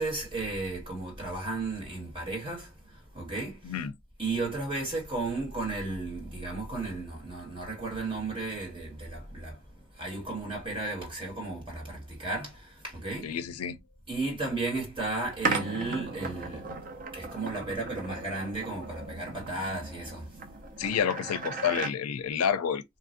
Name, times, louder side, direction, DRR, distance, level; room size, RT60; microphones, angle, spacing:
voice 1, 0.0-3.9 4.2-13.4 14.1-20.4, right 3 dB, 25° right, 1.9 m, -34 dB
voice 2, 13.2-13.8 20.8-22.8, left 7 dB, 90° left, 0.4 m, -29 dB
sound 1, 15.5-21.9, right 3 dB, 40° right, 0.5 m, -36 dB
3.0 x 2.5 x 2.5 m
head